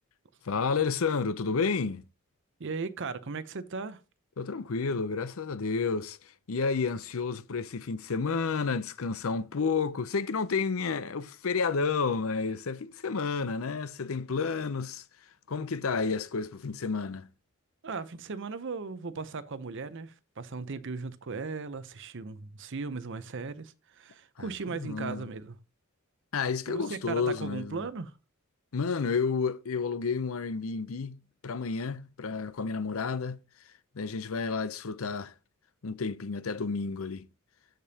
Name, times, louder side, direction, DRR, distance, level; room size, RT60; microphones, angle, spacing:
voice 1, 0.4-2.0 4.4-15.0 15.5-17.3 24.4-25.3 26.3-27.9 28.7-33.4 33.9-35.3 35.8-37.3, left 5 dB, 65° left, 0.6 m, -31 dB
voice 2, 2.6-4.0 17.8-25.6 26.7-28.1, right 4 dB, 55° right, 0.7 m, -37 dB
13.5 x 5.1 x 2.8 m
head